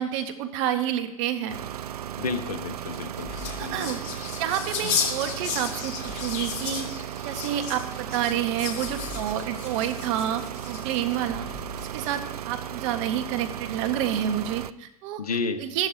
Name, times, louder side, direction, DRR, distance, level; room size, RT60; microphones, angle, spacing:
voice 1, 0.0-1.5 3.6-4.0 4.4-11.4 11.9-12.2 12.5-15.2 15.6-15.9, right 10 dB, 55° right, 8 dB, 1.4 m, -29 dB
sound 1, 1.5-14.7, right 10 dB, 85° right, 0.4 m, -36 dB
voice 2, 2.2-3.9 15.2-15.6, left 4 dB, 85° left, 9 dB, 1.1 m, -31 dB
sound 2, 2.8-11.2 11.8-12.4, left 6 dB, 55° left, 2.4 m, -34 dB
sound 3, 3.2-3.8 6.0-6.6 8.8-9.5 11.3-12.0, left 4 dB, 30° left, 2.6 m, -42 dB
14.0 x 12.0 x 2.8 m, 0.84 s
hypercardioid pair, 95°, 19 cm